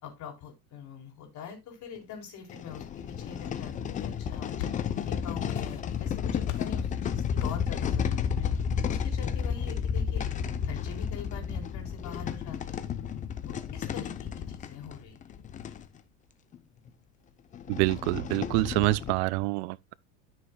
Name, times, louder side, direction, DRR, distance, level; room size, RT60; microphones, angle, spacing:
voice 1, 0.0-8.5 8.9-10.3 10.6-12.9 13.4-15.3, left 6 dB, 40° left, 3.8 m, -44 dB
sound 1, 2.0-2.1 2.5-15.8 16.5-16.6 16.9-17.0 17.5-19.1, left 7 dB, 20° left, 0.5 m, -32 dB
sound 2, 4.2-5.1 5.5-6.1 6.5-6.8 7.4-7.8, left 11 dB, 80° left, 1.4 m, -40 dB
voice 2, 17.7-19.9, right 20 dB, 50° right, 0.5 m, -27 dB
13.0 x 6.6 x 2.2 m
supercardioid pair, 140°, 45 cm